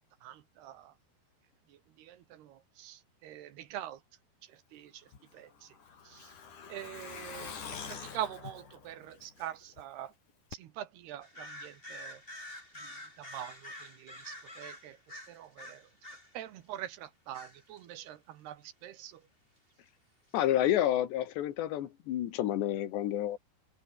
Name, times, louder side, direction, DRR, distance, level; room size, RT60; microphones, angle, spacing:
voice 1, 0.2-0.9 2.0-4.0 4.7-4.9 5.3-5.5 6.1-6.2 6.7-7.6 7.9-10.1 10.6-12.2 13.2-13.7 14.0-15.0 15.3-15.8 16.3-19.1, right 12 dB, 70° right, 3.4 m, -43 dB
Truck, 5.1-9.8 10.1-10.2 10.5-10.6, left 6 dB, 50° left, 4.7 m, -45 dB
sound 1, 11.2-16.3 17.3-17.9 20.3-20.4, left 1 dB, 10° left, 8.0 m, -47 dB
voice 2, 20.3-23.4, left 12 dB, 80° left, 4.0 m, -29 dB
omnidirectional pair, 5.0 m